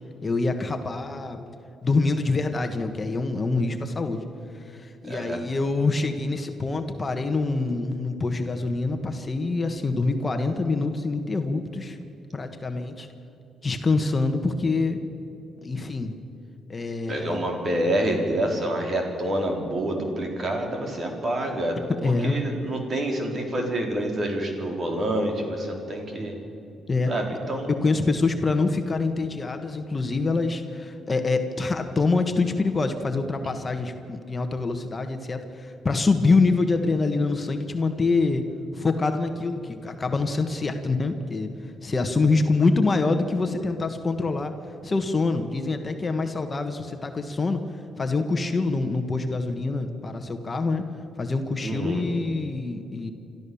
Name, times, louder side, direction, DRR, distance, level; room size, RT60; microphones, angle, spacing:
voice 1, 0.2-1.4 1.8-4.2 4.6-12.0 12.3-13.1 13.6-15.0 15.6-16.1 16.7-17.4 22.0-22.4 26.9-27.1 27.7-38.4 38.7-41.5 41.8-44.5 44.8-47.6 48.0-50.8 51.2-53.1, left 3 dB, 30° left, 6 dB, 1.5 m, -25 dB
voice 2, 5.0-5.4 17.1-21.8 22.0-26.3 27.1-27.7 51.6-52.0, right 1 dB, 40° right, 2 dB, 4.3 m, -27 dB
27.0 x 13.5 x 7.2 m, 2.9 s
cardioid pair, 90°, 0 cm